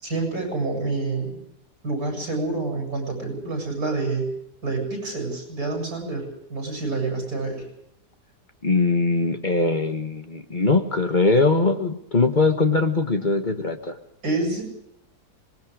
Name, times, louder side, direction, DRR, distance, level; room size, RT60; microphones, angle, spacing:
voice 1, 0.0-1.4 1.8-4.3 4.6-7.7 14.2-14.6, right 3 dB, 60° right, 2 dB, 8.6 m, -27 dB
voice 2, 8.6-14.0, left 3 dB, 30° left, 5 dB, 1.7 m, -21 dB
26.0 x 21.0 x 5.0 m, 0.80 s
omnidirectional pair, 1.8 m